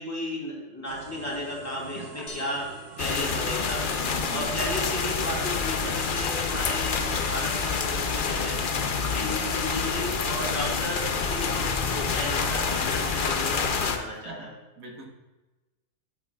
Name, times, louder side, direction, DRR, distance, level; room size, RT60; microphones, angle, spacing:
voice 1, 0.0-2.6 3.0-3.8 4.3-8.6 9.1-12.9 13.2-14.3, left 1 dB, 10° left, -5 dB, 2.9 m, -34 dB
sound 1, 0.8-13.4, right 5 dB, 60° right, 0.9 m, -45 dB
voice 2, 1.8-2.4 4.0-4.6 9.0-9.5 12.7-13.3 14.1-15.0, right 3 dB, 90° right, 0 dB, 2.1 m, -44 dB
sound 2, 2.3-4.1, left 2 dB, 25° left, 0.8 m, -47 dB
sound 3, 3.0-14.0, left 5 dB, 55° left, 0.5 m, -27 dB
12.0 x 8.6 x 2.4 m, 1.1 s
omnidirectional pair, 1.7 m